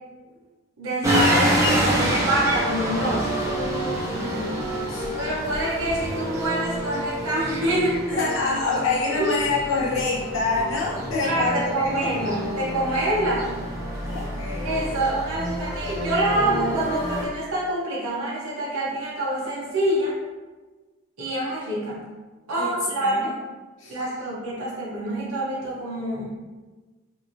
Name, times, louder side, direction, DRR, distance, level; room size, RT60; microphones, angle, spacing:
voice 1, 0.8-3.3 5.2-8.2 9.2-9.3 11.2-13.5 14.6-20.1 21.2-22.0 22.5-23.4 23.9-26.4, right 1 dB, 85° right, -5 dB, 0.7 m, -26 dB
sound 1, 1.0-17.3, equal, 15° right, 0.4 m, -27 dB
voice 2, 4.2-4.6 4.9-5.1 8.1-12.1 14.0-14.8 22.5-22.7 23.0-23.3 23.8-24.0, left 3 dB, 65° left, -5 dB, 0.8 m, -26 dB
2.9 x 2.5 x 2.5 m, 1.3 s
head